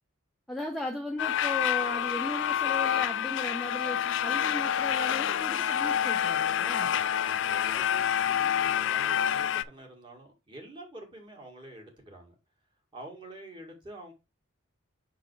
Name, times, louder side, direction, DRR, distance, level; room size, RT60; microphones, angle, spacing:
voice 1, 0.5-6.9, left 1 dB, ahead, 0.7 m, -37 dB
sound 1, 1.2-9.6, left 9 dB, 60° left, 0.3 m, -28 dB
voice 2, 6.7-12.4 12.9-14.1, right 1 dB, 25° right, 2.0 m, -47 dB
5.6 x 4.1 x 4.7 m
head